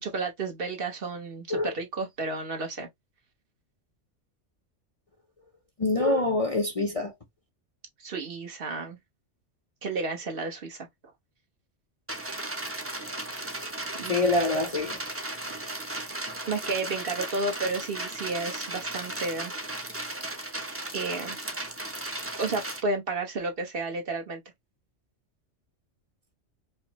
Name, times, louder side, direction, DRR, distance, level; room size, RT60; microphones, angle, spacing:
voice 1, 0.0-2.9 8.0-9.0 9.8-10.9 14.0-14.3 16.5-19.5 20.9-21.4 22.4-24.4, right 3 dB, 55° right, 1.0 m, -32 dB
voice 2, 5.8-7.1 14.1-15.0, left 2 dB, 35° left, 0.6 m, -25 dB
sound 1, 12.1-22.8, right 1 dB, 15° right, 0.5 m, -36 dB
5.0 x 2.0 x 2.9 m
omnidirectional pair, 1.2 m